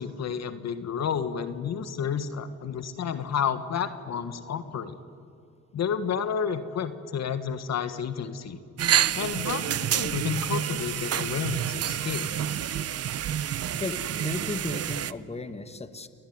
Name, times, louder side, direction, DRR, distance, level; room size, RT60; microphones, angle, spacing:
voice 1, 0.0-5.0 5.7-8.6 9.1-12.3, left 7 dB, 60° left, 11 dB, 1.6 m, -31 dB
sound 1, 8.8-15.1, right 10 dB, 55° right, 0.9 m, -28 dB
voice 2, 13.8-16.1, left 3 dB, 20° left, 11 dB, 1.8 m, -35 dB
29.5 x 20.0 x 9.5 m, 2.6 s
cardioid pair, 90°, 30 cm